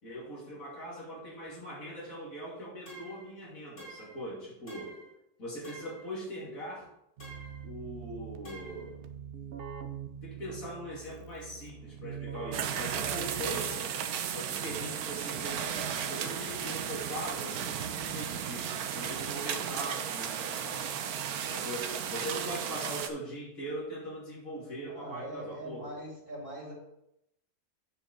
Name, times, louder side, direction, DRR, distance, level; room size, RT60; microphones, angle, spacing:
voice 1, 0.0-5.0 5.4-6.9 7.6-9.0 10.2-14.0 14.3-20.9 21.4-25.9, equal, 60° left, -5 dB, 3.0 m, -41 dB
sound 1, 2.9-3.3 3.8-4.2 4.7-5.1 5.6-6.1 7.2-7.6 8.4-8.9, right 2 dB, 40° left, 2.8 m, -49 dB
Keyboard (musical), 7.2-14.0, right 8 dB, 50° right, 0.7 m, -44 dB
sound 2, 12.5-23.1, right 8 dB, 75° right, 1.2 m, -35 dB
voice 2, 24.9-26.7, right 1 dB, 35° right, -4 dB, 2.8 m, -42 dB
8.8 x 5.0 x 5.1 m, 0.80 s
omnidirectional pair, 1.6 m